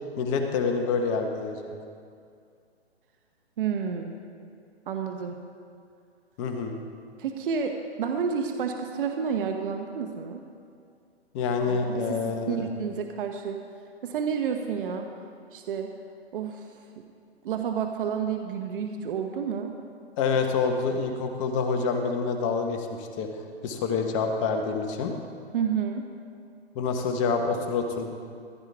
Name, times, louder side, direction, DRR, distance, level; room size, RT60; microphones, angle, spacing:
voice 1, 0.2-1.7 6.4-6.8 11.3-12.7 20.2-23.3 23.6-25.1 26.7-28.1, left 5 dB, 30° left, 4 dB, 1.2 m, -27 dB
voice 2, 3.6-4.2 4.9-5.4 7.2-10.4 11.7-13.6 14.0-15.1 15.5-15.9 16.3-16.6 17.4-19.8 25.5-26.1, right 6 dB, 55° right, 4 dB, 1.1 m, -30 dB
15.5 x 13.0 x 3.5 m, 2.4 s
hypercardioid pair, 135°, 33 cm